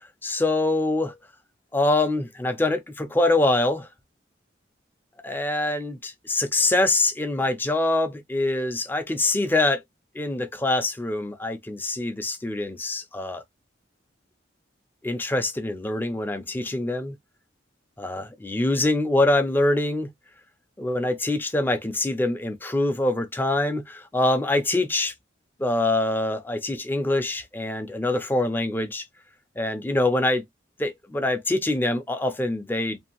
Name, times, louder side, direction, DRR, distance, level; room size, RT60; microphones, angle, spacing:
voice 1, 0.2-1.2 1.7-3.9 5.2-9.8 10.2-13.4 15.0-17.2 18.0-20.1 20.8-25.1 25.6-29.0 29.6-30.4 30.8-33.0, left 2 dB, 10° left, 0.4 m, -24 dB
2.6 x 2.4 x 2.8 m
head